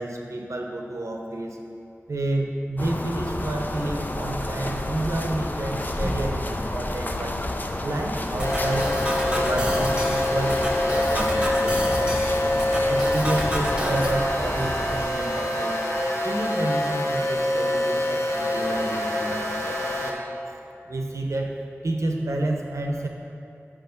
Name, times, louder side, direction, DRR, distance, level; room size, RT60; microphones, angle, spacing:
voice 1, 0.0-1.6 2.1-7.4 7.8-8.9 9.2-12.5 12.9-15.7 16.2-20.2 20.8-21.5 21.8-23.1, right 2 dB, 85° right, 1 dB, 0.8 m, -30 dB
sound 1, 2.8-15.1, left 1 dB, 40° left, 0.5 m, -30 dB
sound 2, 8.4-20.1, left 1 dB, 80° left, 0.9 m, -25 dB
sound 3, 8.4-14.1, equal, 20° right, 1.0 m, -31 dB
6.1 x 4.7 x 6.4 m, 2.6 s
wide cardioid pair, 50°, 5 cm